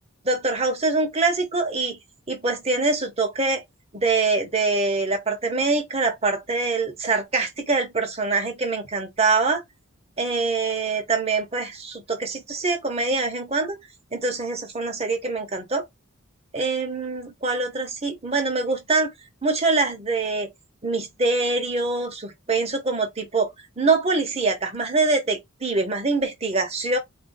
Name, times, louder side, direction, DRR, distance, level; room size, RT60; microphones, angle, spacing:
voice 1, 0.2-2.0 2.3-3.6 3.9-9.6 10.2-13.8 14.1-15.8 16.5-19.1 19.4-20.5 20.8-23.5 23.8-27.0, right 3 dB, 30° right, 0.9 m, -24 dB
3.8 x 2.4 x 2.6 m
head